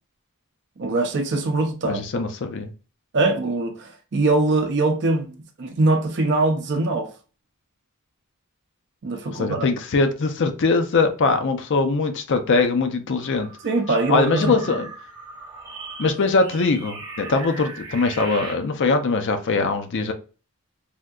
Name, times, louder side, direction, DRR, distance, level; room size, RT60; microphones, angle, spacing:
voice 1, 0.8-2.0 3.1-7.1 9.0-9.7 13.6-14.6, right 2 dB, 50° right, 0.5 m, -22 dB
voice 2, 1.9-2.7 9.3-13.5 13.9-14.9 16.0-20.1, left 3 dB, 55° left, 0.5 m, -22 dB
sound 1, 13.2-18.5, right 3 dB, 20° right, 0.7 m, -38 dB
3.5 x 2.7 x 2.3 m
head